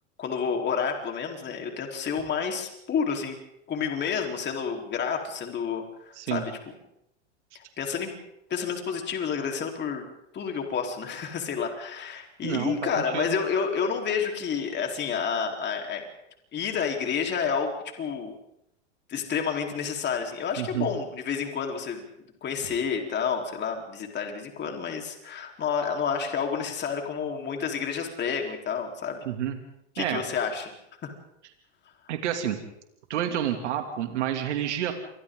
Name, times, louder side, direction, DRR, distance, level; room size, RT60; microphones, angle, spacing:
voice 1, 0.2-3.4 3.7-6.6 7.5-8.2 8.5-10.0 10.3-16.0 16.5-17.7 18.0-18.3 19.1-22.0 22.4-29.2 30.0-30.7, left 6 dB, 30° left, 2 dB, 4.1 m, -29 dB
voice 2, 12.4-13.4 20.6-20.9 29.2-29.6 30.0-30.2 32.1-32.6 33.1-34.9, right 10 dB, 85° right, 5 dB, 2.8 m, -29 dB
28.5 x 24.0 x 3.9 m, 0.80 s
supercardioid pair, 120°, 34 cm